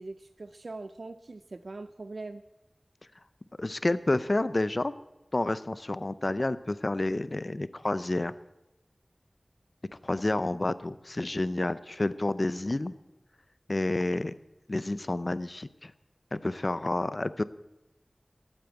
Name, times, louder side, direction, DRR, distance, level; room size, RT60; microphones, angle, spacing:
voice 1, 0.0-2.4, right 3 dB, 85° right, 12 dB, 0.5 m, -42 dB
voice 2, 3.6-4.9 5.3-8.3 10.0-12.9 13.7-14.3 14.7-15.9 16.3-17.4, left 2 dB, 50° left, 15 dB, 0.6 m, -29 dB
12.5 x 8.9 x 8.0 m, 0.95 s
wide cardioid pair, 45°, 0 cm